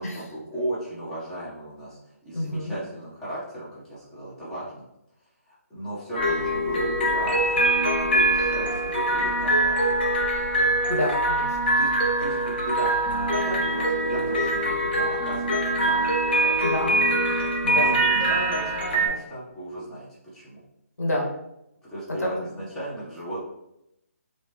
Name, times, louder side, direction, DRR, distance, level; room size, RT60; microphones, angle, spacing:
voice 1, 0.0-2.0 2.2-4.8 5.5-9.8 10.7-11.0 11.8-11.9 12.2-17.0 17.6-20.6 21.9-23.4, right 1 dB, 5° left, -10 dB, 0.7 m, -35 dB
voice 2, 2.3-2.7 10.9-11.6 16.6-17.0 17.6-18.0 21.0-21.3 22.2-22.4, left 1 dB, 90° left, -1 dB, 1.2 m, -28 dB
sound 1, 6.1-19.1, right 1 dB, 40° left, 0.8 m, -23 dB
3.0 x 2.8 x 3.4 m, 0.82 s
hypercardioid pair, 170°, 8 cm